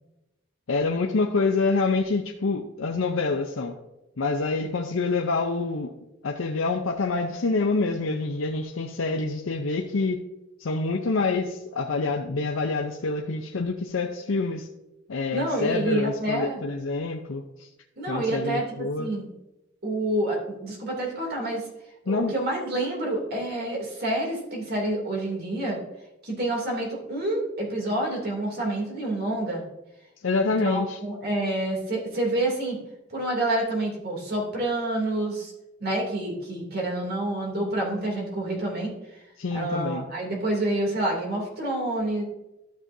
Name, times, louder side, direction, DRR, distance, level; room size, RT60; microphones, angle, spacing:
voice 1, 0.7-3.8 4.2-5.9 6.2-10.2 10.6-14.7 15.1-17.7 18.1-19.1 22.1-22.3 30.2-31.0 39.4-40.0, left 3 dB, 85° left, 3 dB, 0.6 m, -26 dB
voice 2, 15.3-16.6 18.0-19.2 19.8-21.7 22.0-25.8 26.2-29.6 30.4-32.8 33.1-35.5 35.8-38.9 39.5-42.2, right 1 dB, 55° right, -1 dB, 2.8 m, -28 dB
12.5 x 7.4 x 2.7 m, 0.94 s
head